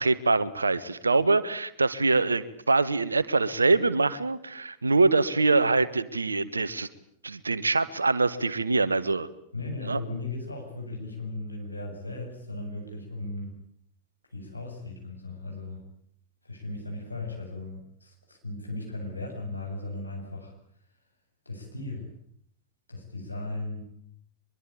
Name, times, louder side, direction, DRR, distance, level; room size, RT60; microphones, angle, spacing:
voice 1, 0.0-6.9 7.2-9.3 9.8-10.0, right 3 dB, 80° right, 15 dB, 1.5 m, -24 dB
voice 2, 9.5-13.5 14.3-15.8 16.4-20.5 21.4-22.1 22.9-23.8, left 2 dB, 85° left, 1 dB, 8.0 m, -37 dB
24.0 x 23.0 x 8.8 m, 0.66 s
figure-of-eight pair, 90°, 0 cm